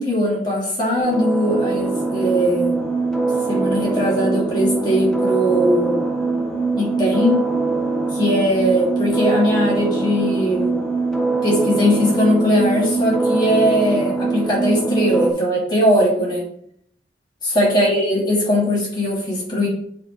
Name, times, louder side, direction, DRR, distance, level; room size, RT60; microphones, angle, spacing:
voice 1, 0.0-2.9 3.5-6.1 6.8-7.5 8.1-10.7 11.4-16.5 17.4-19.7, equal, 25° left, -5 dB, 3.0 m, -19 dB
sound 1, 1.0-15.3, right 3 dB, 5° left, 1.0 m, -22 dB
9.3 x 3.6 x 4.6 m, 0.69 s
head